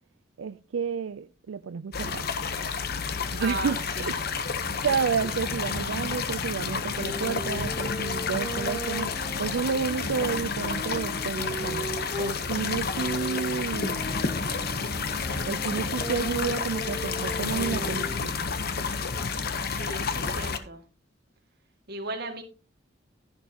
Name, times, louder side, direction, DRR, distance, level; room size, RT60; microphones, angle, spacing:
voice 1, 0.4-2.3 3.3-3.8 4.1-4.2 4.8-11.9 12.2-14.1 15.5-18.4, right 6 dB, 85° right, 0.4 m, -30 dB
sound 1, 1.9-20.6, left 5 dB, 50° left, 0.9 m, -30 dB
voice 2, 3.4-4.2 19.7-20.9 21.9-22.4, right 2 dB, 55° right, 2.2 m, -36 dB
sound 2, 6.8-12.3 13.0-18.2, right 1 dB, 20° left, 6.4 m, -38 dB
11.5 x 11.0 x 2.9 m
head